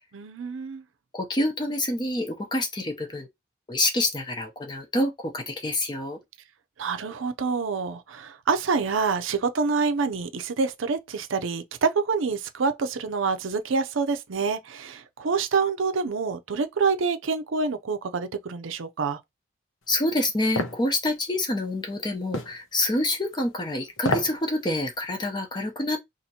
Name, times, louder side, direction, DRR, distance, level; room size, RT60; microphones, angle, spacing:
voice 1, 0.1-0.8 6.8-19.2, right 5 dB, 85° right, 0.5 m, -27 dB
voice 2, 1.1-3.3 3.7-6.2 19.9-26.0, left 1 dB, 20° left, 0.6 m, -27 dB
sound 1, 20.6-20.8 22.3-22.6 24.0-24.4 24.8-24.9, left 2 dB, 85° left, 0.8 m, -27 dB
2.8 x 2.5 x 4.2 m
head